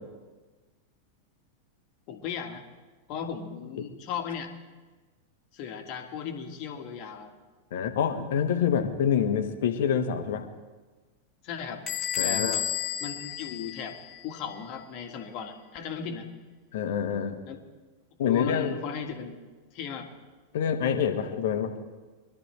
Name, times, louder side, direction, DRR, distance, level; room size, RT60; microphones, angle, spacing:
voice 1, 2.1-2.6 3.1-4.5 5.5-7.3 11.4-11.8 12.2-12.7 13.0-16.3 17.5-17.6 18.3-19.4 19.7-20.1, left 7 dB, 40° left, 4 dB, 1.8 m, -36 dB
voice 2, 7.7-10.4 12.2-12.6 16.7-17.4 18.2-18.7 20.5-21.7, left 8 dB, 55° left, 7 dB, 1.3 m, -26 dB
Bell / Door, 11.9-14.4, left 9 dB, 25° left, 1.8 m, -32 dB
23.0 x 12.5 x 3.3 m, 1.3 s
figure-of-eight pair, 90°, 0 cm